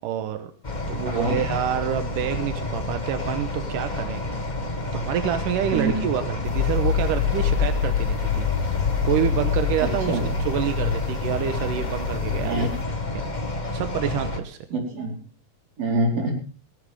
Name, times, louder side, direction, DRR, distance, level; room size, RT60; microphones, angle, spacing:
voice 1, 0.0-0.5 0.9-4.2 4.9-8.5 9.0-12.7 13.1-13.3 13.7-14.6, right 10 dB, 90° right, 8 dB, 2.6 m, -27 dB
sound 1, 0.6-14.4, left 2 dB, 25° left, 1.1 m, -29 dB
voice 2, 1.0-1.4 5.7-6.0 10.1-10.2 12.4-12.7 14.7-15.2 15.8-16.3, right 2 dB, 50° right, 0 dB, 5.7 m, -25 dB
sound 2, 6.4-12.8, left 8 dB, 65° left, 1.8 m, -26 dB
17.5 x 16.0 x 3.6 m, 0.36 s
omnidirectional pair, 3.7 m